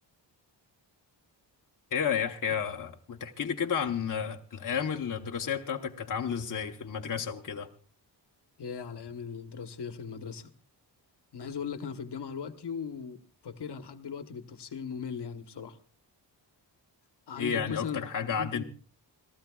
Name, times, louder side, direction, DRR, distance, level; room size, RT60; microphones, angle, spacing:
voice 1, 1.9-7.7 17.4-18.6, left 7 dB, 45° left, 3 dB, 0.9 m, -32 dB
voice 2, 8.6-10.5 11.3-15.8 17.3-18.6, left 6 dB, 65° left, 9 dB, 1.2 m, -38 dB
29.0 x 14.5 x 2.3 m, 0.37 s
wide cardioid pair, 135°, 44 cm